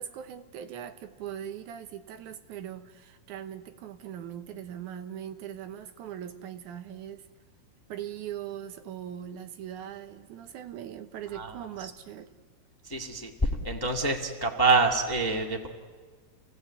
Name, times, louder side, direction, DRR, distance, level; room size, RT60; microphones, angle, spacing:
voice 1, 0.0-7.3 7.9-12.3, right 10 dB, 90° right, 8 dB, 2.5 m, -40 dB
voice 2, 11.3-11.9 12.8-15.7, right 3 dB, 15° left, 1 dB, 0.9 m, -27 dB
29.0 x 17.5 x 8.3 m, 1.5 s
omnidirectional pair, 3.4 m